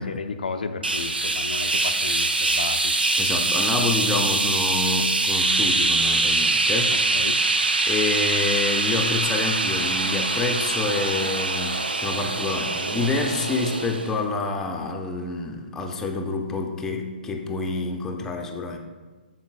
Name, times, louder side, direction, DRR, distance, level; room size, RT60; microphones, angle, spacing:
voice 1, 0.0-2.9 7.1-7.4, left 4 dB, 65° left, 7 dB, 0.4 m, -33 dB
sound 1, 0.8-14.2, right 2 dB, 80° right, 0.5 m, -23 dB
voice 2, 3.2-7.0 7.9-18.8, left 3 dB, 10° left, 2 dB, 0.5 m, -27 dB
10.5 x 3.9 x 2.3 m, 1.3 s
figure-of-eight pair, 125°, 5 cm